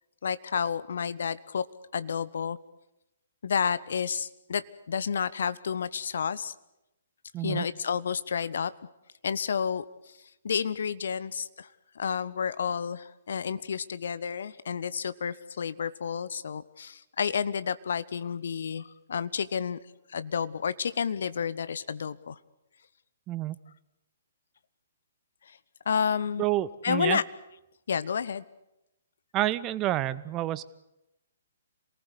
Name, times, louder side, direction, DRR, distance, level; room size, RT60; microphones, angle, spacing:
voice 1, 0.2-2.6 3.4-6.5 7.4-8.7 9.2-9.8 10.4-11.7 12.0-19.8 20.1-22.4 25.5-25.6 25.9-26.4 26.8-27.2 27.9-28.4, left 7 dB, 60° left, 16 dB, 1.0 m, -30 dB
voice 2, 7.3-7.7 23.3-23.6 26.4-27.2 29.3-30.6, right 15 dB, 25° right, 17 dB, 0.8 m, -29 dB
27.0 x 19.0 x 8.2 m, 0.92 s
figure-of-eight pair, 125°, 0 cm